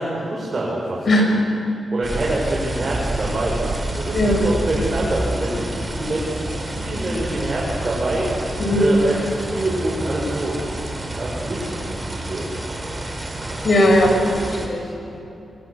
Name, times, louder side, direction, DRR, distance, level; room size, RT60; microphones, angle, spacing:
voice 1, 0.0-1.4 1.9-10.9 11.1-12.5, right 1 dB, 35° right, -5 dB, 6.7 m, -26 dB
sound 1, 2.0-14.7, right 1 dB, 20° right, 4.5 m, -29 dB
voice 2, 8.6-8.9 13.6-14.8 15.1-15.2, left 1 dB, 55° left, 2 dB, 6.6 m, -18 dB
28.5 x 25.0 x 8.2 m, 2.8 s
wide cardioid pair, 105°, 0 cm